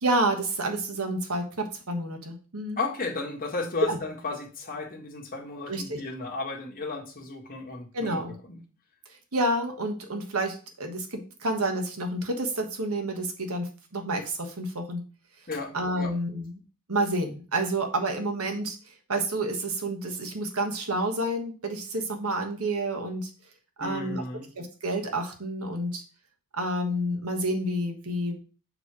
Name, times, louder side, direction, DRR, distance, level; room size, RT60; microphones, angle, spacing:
voice 1, 0.0-2.8 3.9-4.0 5.7-6.0 7.9-8.4 9.3-15.0 15.7-16.5 16.9-23.3 23.8-24.2 24.6-26.0 26.5-28.4, right 1 dB, 70° right, 4 dB, 1.4 m, -29 dB
voice 2, 2.8-8.2 8.5-8.6 15.5-16.1 23.8-24.5, left 3 dB, 40° left, 0 dB, 1.8 m, -34 dB
7.0 x 3.3 x 6.0 m, 0.37 s
head